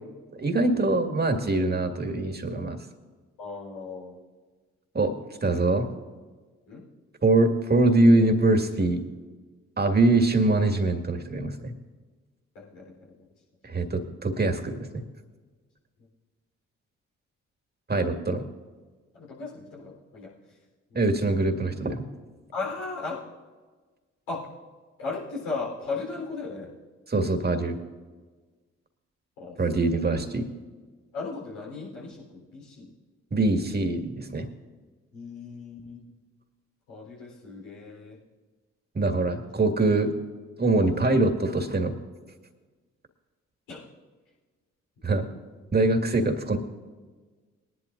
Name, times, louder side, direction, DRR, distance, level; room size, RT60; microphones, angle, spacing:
voice 1, 0.3-2.8 4.9-5.1 5.4-5.9 7.2-9.0 9.8-11.7 13.6-15.0 17.9-18.4 20.9-22.0 27.1-27.8 29.6-30.5 33.3-34.5 39.0-40.1 40.6-42.0 45.0-45.3 45.7-46.6, right 2 dB, 30° right, 5 dB, 2.1 m, -23 dB
voice 2, 3.4-4.2 6.7-6.8 12.5-13.2 19.1-20.6 20.9-21.0 22.5-23.2 24.3-24.5 25.0-26.7 29.4-29.6 29.8-30.2 31.1-32.9 35.1-36.0 36.9-38.2 43.7-43.9 45.3-45.4, left 4 dB, 80° left, -4 dB, 4.1 m, -37 dB
21.0 x 11.0 x 2.6 m, 1.4 s
hypercardioid pair, 40°, 34 cm